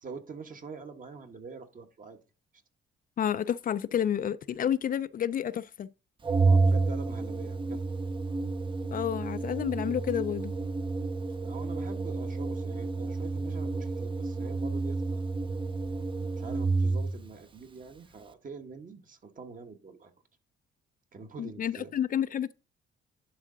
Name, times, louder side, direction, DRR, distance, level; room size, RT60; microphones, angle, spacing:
voice 1, 0.0-2.2 6.4-7.8 11.4-15.3 16.4-20.1 21.1-21.9, right 4 dB, 40° right, 1.2 m, -45 dB
voice 2, 3.2-5.9 8.9-10.5 21.4-22.5, left 9 dB, 45° left, 0.4 m, -30 dB
Organ, 6.2-17.3, right 3 dB, 25° right, 0.6 m, -30 dB
11.0 x 3.7 x 3.8 m
cardioid pair, 90°, 20 cm